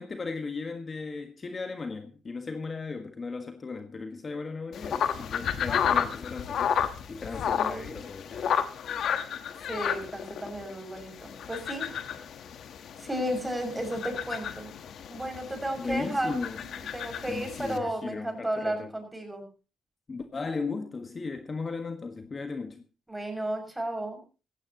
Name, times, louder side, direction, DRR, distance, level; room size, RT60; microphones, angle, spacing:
voice 1, 0.0-8.5 15.8-16.6 17.3-18.9 20.1-22.8, left 4 dB, 35° left, 1.5 m, -36 dB
sound 1, 4.7-17.8, left 8 dB, 65° left, 1.3 m, -32 dB
voice 2, 7.5-8.1 9.7-11.9 13.0-14.7 15.1-19.4 23.1-24.2, right 1 dB, 10° right, 6.4 m, -33 dB
16.0 x 16.0 x 3.0 m
cardioid pair, 90°, 0 cm